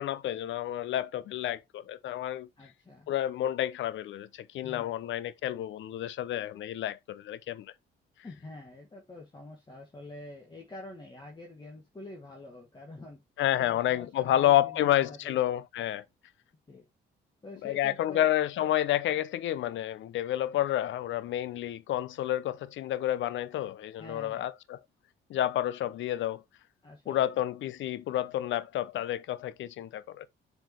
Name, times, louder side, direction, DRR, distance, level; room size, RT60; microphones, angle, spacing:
voice 1, 0.0-2.5 3.1-7.7 13.4-16.0 17.6-24.8 25.3-26.4 27.1-30.3, left 12 dB, 75° left, 0.7 m, -30 dB
voice 2, 2.6-3.1 4.6-4.9 8.2-13.2 13.6-15.4 16.7-16.9 17.4-18.3 24.0-24.5 26.8-27.3, left 2 dB, 20° left, 1.7 m, -47 dB
7.7 x 4.7 x 3.0 m
cardioid pair, 90°, 20 cm